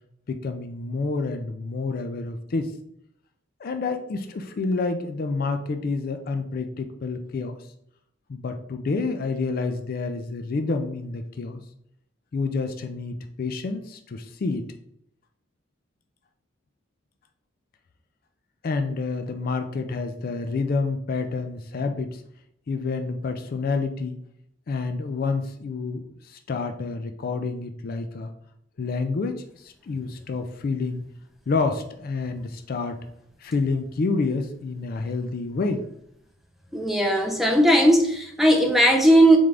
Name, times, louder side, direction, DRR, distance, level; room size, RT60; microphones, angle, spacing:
voice 1, 0.3-2.7 3.6-7.6 8.3-11.6 12.3-14.7 18.6-22.2 22.7-24.2 24.7-28.3 28.8-31.0 31.5-33.0 33.4-35.9, left 3 dB, 50° left, 7 dB, 0.4 m, -28 dB
voice 2, 36.7-39.4, right 1 dB, ahead, 2 dB, 0.5 m, -17 dB
3.7 x 3.5 x 3.3 m, 0.73 s
head